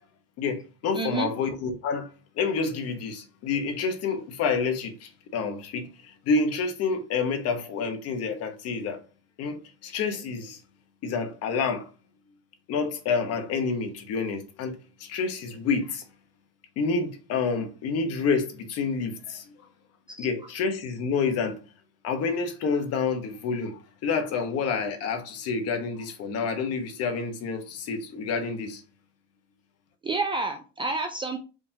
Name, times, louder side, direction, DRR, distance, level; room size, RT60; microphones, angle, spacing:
voice 1, 0.4-2.1 2.3-9.0 9.4-10.6 11.0-11.9 12.7-16.0 16.8-19.5 20.2-21.6 22.0-28.8, left 5 dB, 45° left, 1.1 m, -28 dB
voice 2, 0.9-1.3 20.1-20.3 30.0-31.4, right 3 dB, 15° right, 0.4 m, -29 dB
5.1 x 3.6 x 2.8 m
cardioid pair, 145°, 34 cm